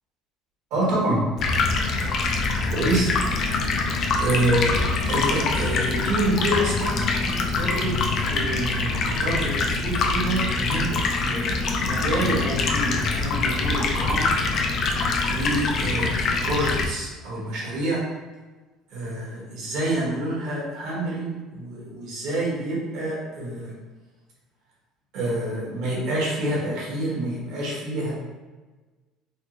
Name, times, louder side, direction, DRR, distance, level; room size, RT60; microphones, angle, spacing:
voice 1, 0.7-1.2 2.7-3.1 4.2-4.8 5.1-7.9 8.3-14.3 15.2-18.0 18.9-23.7 25.1-28.1, right 1 dB, 60° right, -4 dB, 1.2 m, -27 dB
Stream, 1.4-16.9, left 3 dB, 40° left, 0.4 m, -24 dB
3.4 x 2.4 x 2.9 m, 1.3 s
cardioid pair, 160°, 0 cm